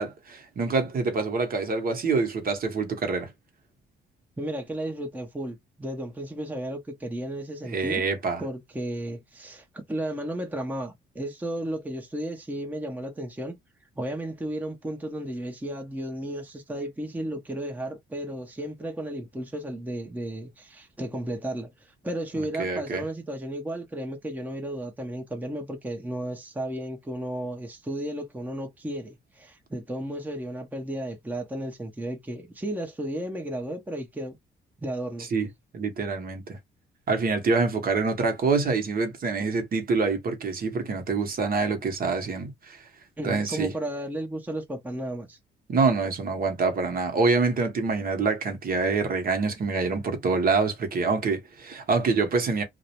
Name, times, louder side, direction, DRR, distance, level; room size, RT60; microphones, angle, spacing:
voice 1, 0.0-3.3 7.6-8.4 22.6-23.0 35.3-35.5 35.7-36.6 37.1-42.8 43.2-43.7 45.7-52.6, right 4 dB, 45° right, 0.9 m, -26 dB
voice 2, 4.4-8.1 8.4-13.5 14.0-34.4 34.8-35.3 43.2-45.4, right 1 dB, 10° right, 0.7 m, -34 dB
2.4 x 2.1 x 2.8 m
cardioid pair, 90°, 20 cm